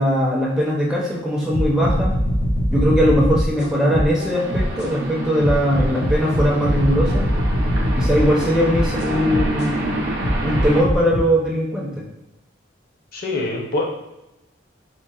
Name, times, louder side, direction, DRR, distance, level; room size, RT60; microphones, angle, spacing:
voice 1, 0.0-2.1 2.7-7.3 8.0-10.0 10.4-11.9, equal, 5° right, -5 dB, 0.4 m, -20 dB
sound 1, 1.5-4.9 5.4-9.7 10.2-11.2, equal, 85° left, 1.3 m, -22 dB
sound 2, 4.3-10.8, right 1 dB, 65° right, 0.5 m, -27 dB
voice 2, 13.1-13.8, left 2 dB, 50° left, 0 dB, 0.5 m, -26 dB
3.8 x 2.0 x 2.3 m, 0.94 s
head